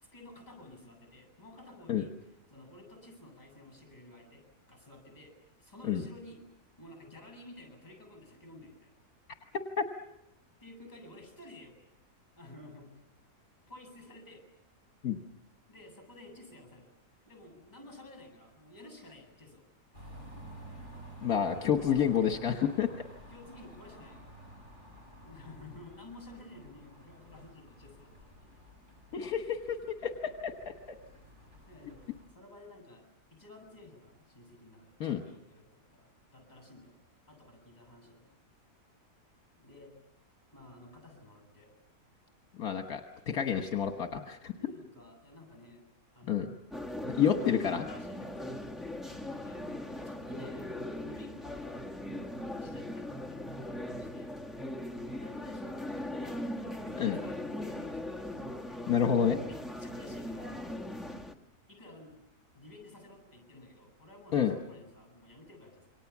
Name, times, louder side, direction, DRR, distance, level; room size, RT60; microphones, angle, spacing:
voice 1, 0.0-2.1 2.5-6.4 6.8-8.9 10.6-11.8 12.4-13.0 13.7-14.4 15.7-16.9 17.3-19.6 21.5-23.0 23.3-24.3 25.2-28.6 31.7-33.0 33.3-37.0 37.3-38.3 39.6-39.9 40.5-41.7 44.2-45.8 46.1-46.5 47.1-48.6 49.3-51.7 52.6-54.4 55.1-58.5 59.0-60.7 61.7-62.2 62.5-65.9, left 2 dB, 25° left, 7 dB, 8.1 m, -53 dB
voice 2, 9.5-9.9 15.0-15.2 21.2-22.9 29.1-30.7 35.0-35.2 42.6-43.0 43.3-44.7 46.3-46.5 47.1-47.8 57.0-57.2 58.9-59.4 64.3-64.5, left 8 dB, 70° left, 5 dB, 1.7 m, -29 dB
sound 1, 19.9-32.3, equal, 30° right, 7.8 m, -52 dB
sound 2, 46.7-61.3, left 1 dB, ahead, 1.5 m, -39 dB
28.0 x 24.0 x 7.2 m, 0.83 s
omnidirectional pair, 1.7 m